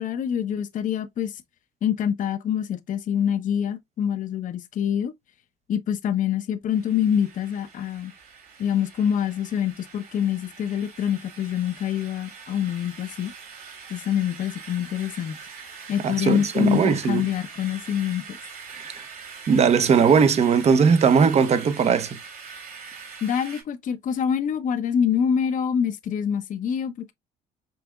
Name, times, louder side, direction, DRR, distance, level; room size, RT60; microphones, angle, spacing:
voice 1, 0.0-1.4 1.8-5.1 5.7-8.1 8.6-13.3 13.9-15.4 15.9-18.4 23.2-27.1, left 8 dB, 50° left, 0.7 m, -25 dB
sound 1, 6.7-23.6, right 5 dB, 60° right, 3.1 m, -43 dB
voice 2, 16.0-17.3 18.7-19.0 19.5-22.2, right 6 dB, 40° right, 0.7 m, -19 dB
5.5 x 3.4 x 2.3 m
cardioid pair, 110°, 17 cm